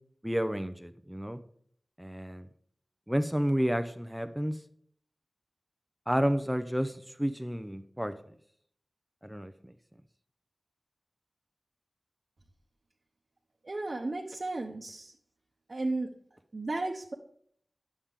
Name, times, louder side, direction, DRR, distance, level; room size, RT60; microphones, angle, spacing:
voice 1, 0.2-1.4 2.0-2.5 3.1-4.6 6.1-8.1 9.2-9.7, equal, 5° right, 10 dB, 0.6 m, -31 dB
voice 2, 13.6-15.1 15.7-16.1 16.5-17.1, right 2 dB, 50° right, -1 dB, 0.9 m, -34 dB
9.8 x 7.3 x 3.6 m, 0.63 s
wide cardioid pair, 60°, 0 cm